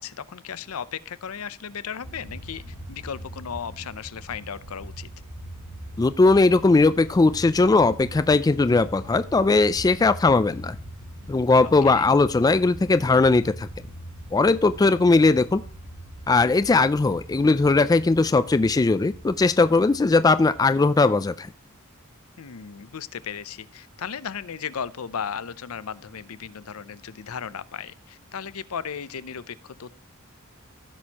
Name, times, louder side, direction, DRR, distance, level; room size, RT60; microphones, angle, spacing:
voice 1, 0.0-2.6 2.9-5.1 11.6-12.1 22.4-29.9, left 7 dB, 80° left, 0.6 m, -35 dB
sound 1, 2.0-21.0, right 1 dB, 85° right, 3.5 m, -42 dB
voice 2, 6.0-10.8 11.3-13.7 14.3-15.6 16.3-21.5, left 3 dB, 15° left, 0.3 m, -19 dB
15.5 x 6.3 x 2.9 m
head